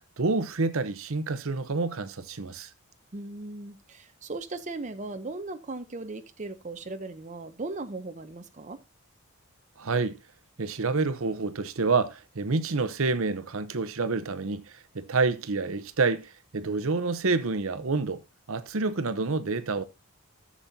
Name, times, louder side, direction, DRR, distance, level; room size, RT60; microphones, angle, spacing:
voice 1, 0.2-2.7 9.8-10.2 10.6-18.2 18.5-19.8, right 3 dB, 65° right, 0.8 m, -28 dB
voice 2, 3.1-8.8, right 2 dB, 35° right, 0.7 m, -38 dB
14.0 x 7.4 x 2.7 m
head